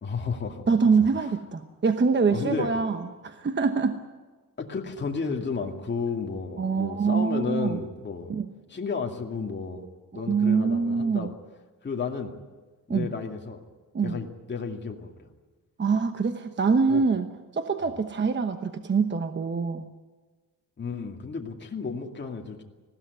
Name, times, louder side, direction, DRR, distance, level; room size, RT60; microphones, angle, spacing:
voice 1, 0.0-0.6 2.3-2.9 4.6-8.3 8.7-9.8 10.2-11.3 11.8-12.3 12.9-13.6 14.0-15.3 16.9-17.0 17.9-18.0 20.8-22.6, left 5 dB, 30° left, 1 dB, 2.3 m, -32 dB
voice 2, 0.7-4.0 6.6-7.8 8.3-8.5 10.3-11.3 12.9-13.1 13.9-14.2 15.8-17.3 17.5-19.9, right 5 dB, 30° right, 8 dB, 1.0 m, -24 dB
20.0 x 16.5 x 9.6 m, 1.3 s
wide cardioid pair, 130°, 35 cm